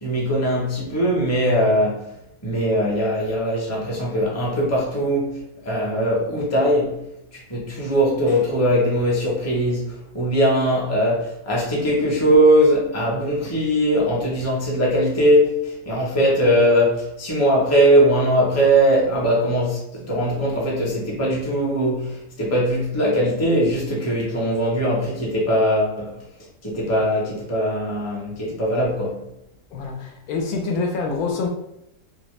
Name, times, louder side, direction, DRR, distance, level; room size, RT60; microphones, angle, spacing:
voice 1, 0.0-2.1 2.4-5.3 5.6-7.0 7.3-26.2 26.6-29.3, equal, 15° left, 0.6 m, -20 dB
voice 2, 29.7-31.5, left 4 dB, 75° left, 1.1 m, -26 dB
2.9 x 2.7 x 3.1 m
omnidirectional pair, 1.6 m